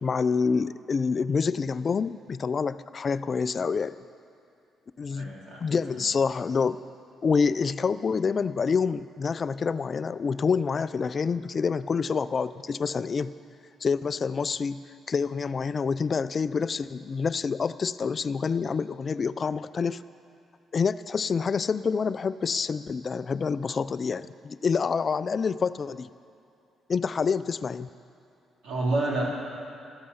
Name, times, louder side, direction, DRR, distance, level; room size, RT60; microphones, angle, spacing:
voice 1, 0.0-4.0 5.0-5.3 5.6-6.8 7.2-13.3 13.8-20.0 20.7-26.1 26.9-27.9, left 5 dB, 40° left, 15 dB, 0.4 m, -27 dB
voice 2, 5.1-5.7 28.6-29.2, right 2 dB, 80° right, -3 dB, 3.3 m, -28 dB
14.0 x 13.0 x 5.6 m, 2.6 s
cardioid pair, 90°, 0 cm